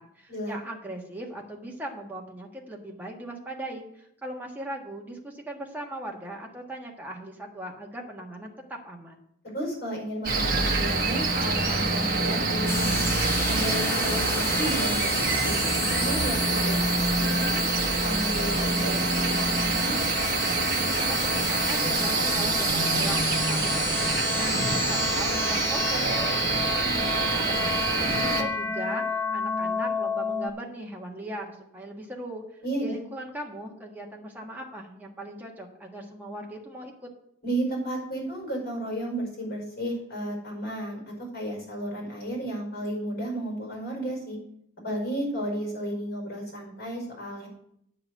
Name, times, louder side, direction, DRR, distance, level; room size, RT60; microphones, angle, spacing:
voice 1, 0.0-9.2 21.0-32.4 32.8-36.9, right 1 dB, 10° right, -1 dB, 1.5 m, -39 dB
voice 2, 9.5-13.1 13.5-17.5 18.0-20.0 28.1-28.5 32.6-33.0 37.4-44.4 44.8-47.5, right 1 dB, 50° left, 0 dB, 5.0 m, -33 dB
Cricket, 10.2-28.4, right 3 dB, 45° right, 1.2 m, -26 dB
sound 1, 12.7-30.5, left 2 dB, 10° left, 0.9 m, -31 dB
9.1 x 5.9 x 7.8 m, 0.75 s
head